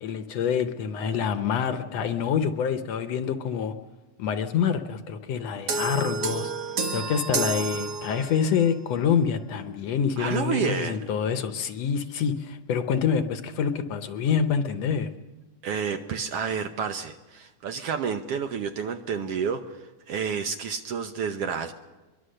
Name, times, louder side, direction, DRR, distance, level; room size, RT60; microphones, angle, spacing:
voice 1, 0.0-3.7 4.2-6.5 6.9-15.1, left 7 dB, 70° left, 9 dB, 1.9 m, -26 dB
sound 1, 5.7-8.6, right 4 dB, 45° right, 1.4 m, -29 dB
voice 2, 10.2-11.0 15.6-19.8 20.1-21.7, right 6 dB, 65° right, 7 dB, 1.7 m, -29 dB
23.0 x 23.0 x 6.6 m, 1.2 s
omnidirectional pair, 3.4 m